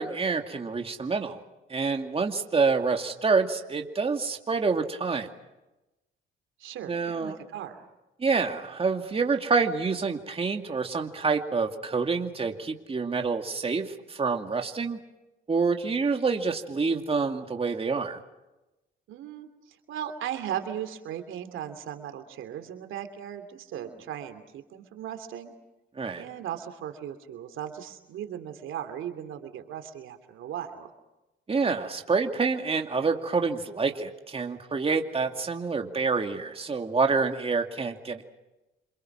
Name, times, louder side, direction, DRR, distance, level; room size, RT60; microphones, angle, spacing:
voice 1, 0.0-1.4 1.7-5.3 6.9-7.4 8.2-15.0 15.5-18.2 26.0-26.2 31.5-38.2, right 4 dB, 30° right, 4 dB, 2.4 m, -27 dB
voice 2, 6.6-7.8 19.1-25.5 26.2-30.9, right 10 dB, 80° right, 8 dB, 2.9 m, -37 dB
27.5 x 27.5 x 6.2 m, 0.99 s
cardioid pair, 90°, 20 cm